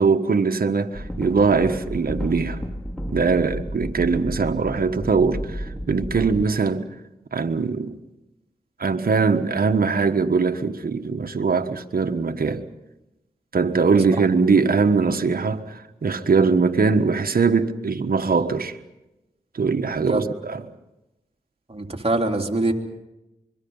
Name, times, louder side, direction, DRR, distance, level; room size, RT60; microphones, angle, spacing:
voice 1, 0.0-2.6 3.1-6.9 7.3-8.0 8.8-12.6 13.5-18.8 19.5-20.6, right 4 dB, 65° right, 1.4 m, -21 dB
sound 1, 0.9-6.5, equal, 5° left, 2.1 m, -32 dB
voice 2, 21.7-22.7, right 2 dB, 40° right, 3.2 m, -24 dB
25.5 x 22.5 x 5.6 m
cardioid pair, 45°, 16 cm